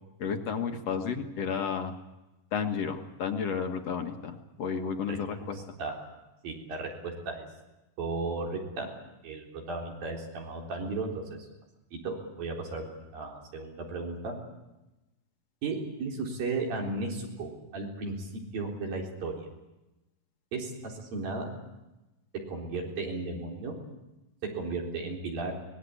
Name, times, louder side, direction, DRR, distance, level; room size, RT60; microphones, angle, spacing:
voice 1, 0.2-1.9 2.5-5.6, left 6 dB, 55° left, 5 dB, 2.2 m, -32 dB
voice 2, 5.5-6.0 6.4-7.5 8.0-8.9 9.2-11.4 12.0-14.3 15.6-18.3 18.5-19.4 20.5-21.5 22.3-23.8 24.6-25.5, right 3 dB, 85° right, 0 dB, 5.7 m, -35 dB
24.0 x 19.0 x 8.5 m, 1.0 s
omnidirectional pair, 4.0 m